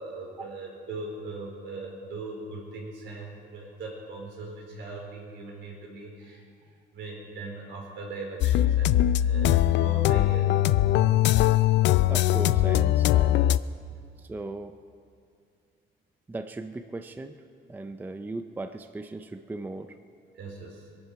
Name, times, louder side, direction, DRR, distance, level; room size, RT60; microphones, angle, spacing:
voice 1, 0.0-10.5 20.3-20.9, right 3 dB, 75° right, -1 dB, 4.0 m, -40 dB
sound 1, 8.4-13.6, left 13 dB, 70° left, 0.4 m, -21 dB
voice 2, 12.1-13.4 14.2-14.8 16.3-17.4 17.7-20.0, right 2 dB, 10° right, 9 dB, 0.4 m, -37 dB
23.0 x 11.5 x 4.7 m, 2.5 s
cardioid pair, 155°, 19 cm